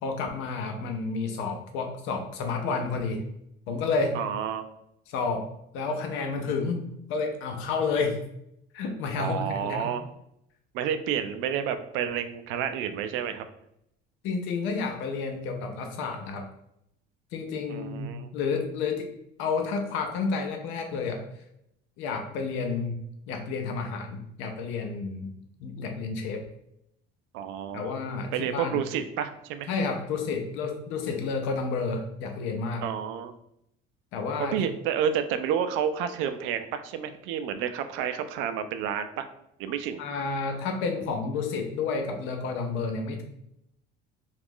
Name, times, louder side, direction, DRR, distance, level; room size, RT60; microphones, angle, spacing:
voice 1, 0.0-3.2 3.7-4.2 5.1-5.5 5.7-8.2 8.7-9.9 14.2-16.5 17.3-19.1 19.4-21.3 22.0-23.0 23.3-25.3 25.6-26.4 27.7-28.8 29.7-32.8 34.1-34.6 40.0-43.2, left 4 dB, 75° left, 4 dB, 0.6 m, -30 dB
voice 2, 4.1-4.7 9.2-10.0 10.7-13.5 17.7-18.3 27.3-28.0 28.3-29.7 32.8-33.3 34.4-39.3 39.6-40.0, right 8 dB, 75° right, 10 dB, 0.4 m, -30 dB
2.9 x 2.4 x 3.6 m, 0.77 s
cardioid pair, 165°, 20 cm